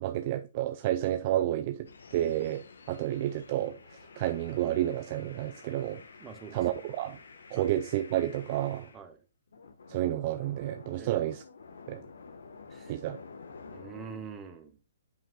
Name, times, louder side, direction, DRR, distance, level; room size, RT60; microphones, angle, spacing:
voice 1, 0.0-6.0 6.5-7.2 7.5-8.9 9.9-11.4 11.9-12.0 12.9-13.2, right 13 dB, 40° right, 0.6 m, -30 dB
sound 1, 1.9-9.0 9.5-14.3, left 4 dB, 75° left, 1.4 m, -51 dB
voice 2, 6.2-6.6 7.5-7.7 8.9-9.2 11.0-11.2 12.7-13.0 13.7-14.8, right 6 dB, 15° right, 1.3 m, -45 dB
8.1 x 7.4 x 2.4 m
hypercardioid pair, 135°, 0 cm